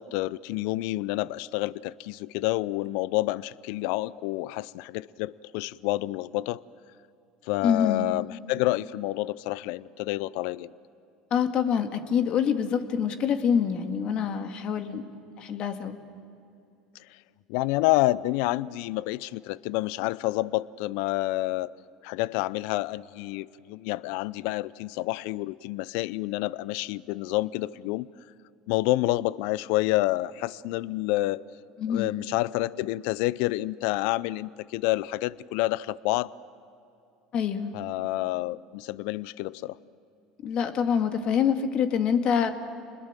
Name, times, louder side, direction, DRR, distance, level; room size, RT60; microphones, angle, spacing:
voice 1, 0.0-6.6 7.5-10.7 17.5-21.7 22.0-28.1 28.7-31.4 31.9-36.3 37.7-39.8, left 18 dB, 70° left, 21 dB, 0.5 m, -28 dB
voice 2, 7.6-8.1 11.3-15.1 15.4-16.0 31.8-32.1 37.3-37.7 40.4-42.5, left 7 dB, 50° left, 7 dB, 1.9 m, -25 dB
28.0 x 21.0 x 7.5 m, 2.7 s
hypercardioid pair, 85°, 2 cm